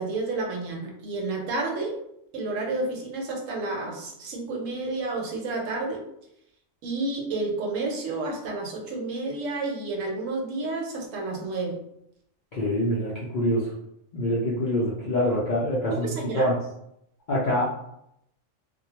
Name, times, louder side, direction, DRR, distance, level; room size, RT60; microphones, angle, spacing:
voice 1, 0.0-2.0 2.3-6.0 6.8-11.7 15.9-16.5, right 3 dB, 80° right, 0 dB, 1.0 m, -30 dB
voice 2, 12.5-13.7 14.1-16.0 16.3-16.5 17.3-17.7, equal, 60° left, -7 dB, 0.5 m, -25 dB
2.2 x 2.1 x 2.8 m, 0.77 s
omnidirectional pair, 1.4 m